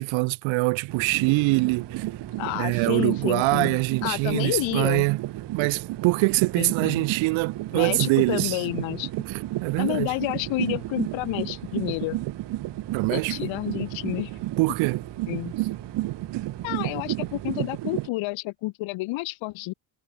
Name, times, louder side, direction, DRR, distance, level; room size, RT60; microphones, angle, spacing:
voice 1, 0.0-2.1 2.5-5.2 5.5-8.6 9.3-10.1 12.9-13.4 14.6-15.0, right 25 dB, 85° right, 0.9 m, -24 dB
sound 1, 0.9-17.6, right 8 dB, 40° right, 7.4 m, -45 dB
sound 2, 0.9-18.1, right 17 dB, 65° right, 1.6 m, -32 dB
voice 2, 2.4-5.1 6.6-7.1 7.7-9.1 9.8-12.2 13.1-14.3 15.3-15.5 16.6-19.7, left 21 dB, 80° left, 2.0 m, -30 dB
cardioid pair, 130°, 45 cm